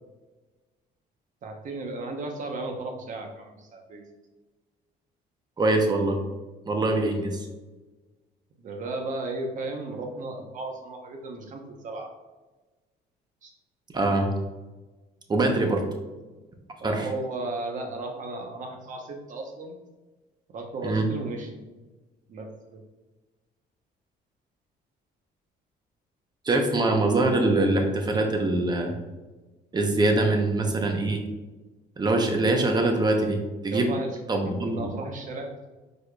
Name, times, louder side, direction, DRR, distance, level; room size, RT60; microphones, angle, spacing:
voice 1, 1.4-4.1 8.6-12.1 13.4-13.5 15.5-15.8 16.8-19.7 20.5-21.6 22.3-22.8 33.7-34.1 34.6-35.6, right 2 dB, 50° right, 3 dB, 1.0 m, -35 dB
voice 2, 5.6-6.2 6.7-7.5 13.9-14.3 15.3-15.8 16.8-17.1 20.8-21.1 26.4-28.9 29.7-31.2 32.0-33.9 34.3-34.9, right 2 dB, 25° right, 3 dB, 0.8 m, -23 dB
4.8 x 4.2 x 2.3 m, 1.2 s
cardioid pair, 110°, 17 cm